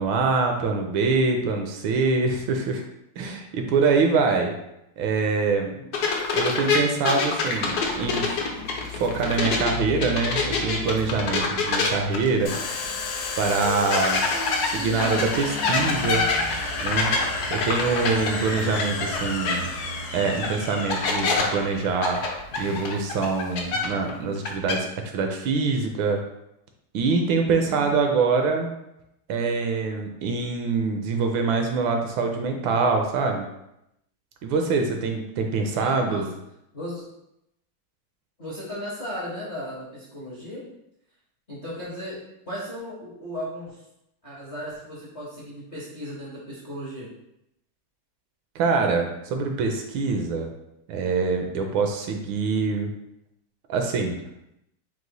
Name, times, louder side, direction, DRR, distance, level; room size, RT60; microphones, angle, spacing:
voice 1, 0.0-2.8 3.2-4.5 5.0-5.7 6.3-8.4 8.9-12.5 13.4-14.2 14.6-16.3 16.8-17.1 17.5-19.7 20.1-22.2 22.6-24.9 25.1-26.2 26.9-28.7 29.3-33.5 34.4-36.3 48.5-50.5 50.9-52.9 53.7-54.2, right 4 dB, 75° right, 4 dB, 1.3 m, -24 dB
voice 2, 5.6-6.1 27.5-28.0 35.7-36.2 36.7-37.0 38.4-40.7 41.5-43.8 44.2-47.1, equal, 45° left, -9 dB, 0.7 m, -36 dB
sound 1, 5.9-9.7 10.0-12.9 13.2-13.3 13.9-19.2 19.4-19.5 20.4-20.5 20.9-21.4 22.0-24.1 24.4-24.7, left 4 dB, 65° left, 1.0 m, -25 dB
Traffic noise roadway noise, 7.6-23.1, left 2 dB, 50° right, 0.6 m, -40 dB
Domestic sounds home sounds, 12.5-23.8, left 4 dB, 85° left, 1.5 m, -33 dB
4.7 x 2.0 x 3.9 m, 0.83 s
omnidirectional pair, 2.3 m